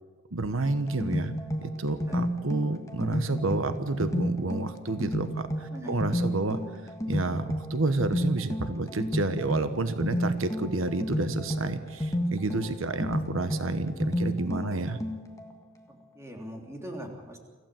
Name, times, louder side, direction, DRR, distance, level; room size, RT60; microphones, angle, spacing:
voice 1, 0.3-1.3 1.6-6.6 7.1-15.0, right 2 dB, 85° right, 10 dB, 1.1 m, -30 dB
sound 1, 0.6-15.5, equal, 15° left, 1.9 m, -32 dB
voice 2, 16.1-17.4, equal, 15° right, 1 dB, 3.2 m, -40 dB
25.5 x 15.0 x 7.7 m, 1.4 s
head